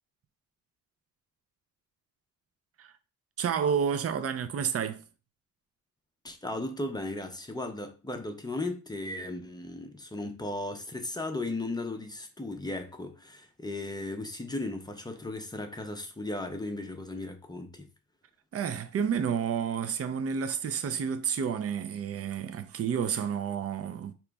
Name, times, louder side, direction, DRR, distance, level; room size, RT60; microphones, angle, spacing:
voice 1, 3.4-5.0 18.5-24.1, right 7 dB, 45° right, 0.5 m, -30 dB
voice 2, 6.2-17.9, left 2 dB, 10° left, 0.5 m, -36 dB
5.1 x 2.9 x 3.4 m
wide cardioid pair, 170°, 34 cm